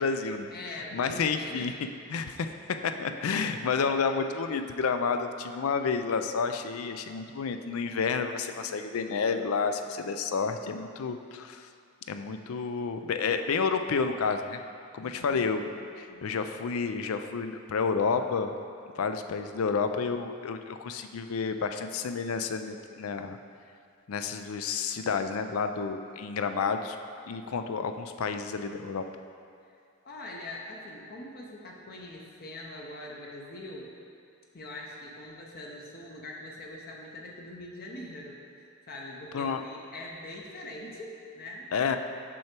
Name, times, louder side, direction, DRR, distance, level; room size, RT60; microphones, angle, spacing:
voice 1, 0.0-1.7 2.1-2.5 2.8-11.7 12.1-14.6 14.9-18.5 18.9-23.4 24.1-27.0 27.3-29.0 39.3-39.6 41.7-42.0, left 5 dB, 75° left, 8 dB, 0.4 m, -30 dB
voice 2, 0.5-1.7 15.0-16.3 30.0-33.9 34.5-41.9, left 1 dB, 45° left, -1 dB, 0.7 m, -43 dB
6.3 x 5.8 x 4.4 m, 2.4 s
head